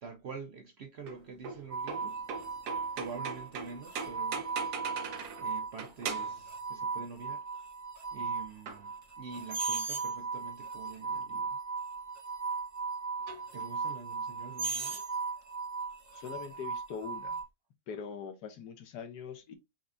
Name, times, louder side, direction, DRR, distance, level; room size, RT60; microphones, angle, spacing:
voice 1, 0.0-2.3 2.9-4.5 5.4-7.5 8.1-11.6 13.5-15.0, right 5 dB, 65° right, 0.6 m, -46 dB
sound 1, 1.1-5.5 5.8-6.4 8.7-8.8 9.5-10.1 10.9-11.0 13.3-13.4 14.6-15.1, right 5 dB, 80° right, 1.5 m, -38 dB
sound 2, 1.7-17.4, right 5 dB, 15° right, 0.8 m, -38 dB
voice 2, 16.1-17.4 17.9-19.6, left 6 dB, 85° left, 1.4 m, -42 dB
5.8 x 3.2 x 2.5 m
omnidirectional pair, 1.7 m